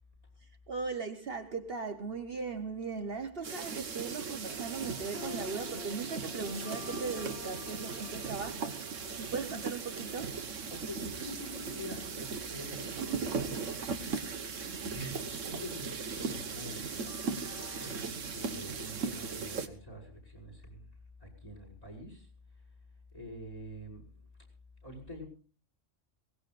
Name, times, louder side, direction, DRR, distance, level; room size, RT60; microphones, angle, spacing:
voice 1, 0.7-10.4, right 4 dB, 50° right, 1.2 m, -38 dB
sound 1, 3.4-19.7, right 5 dB, 80° right, 1.6 m, -38 dB
sound 2, 4.5-11.7 17.1-18.0, left 6 dB, 55° left, 1.7 m, -49 dB
voice 2, 10.7-13.7 14.1-14.6 14.9-17.2 17.7-20.9 21.2-22.3 23.1-24.1 24.8-25.3, left 1 dB, 30° left, 5.8 m, -46 dB
22.5 x 18.5 x 2.5 m
omnidirectional pair, 1.3 m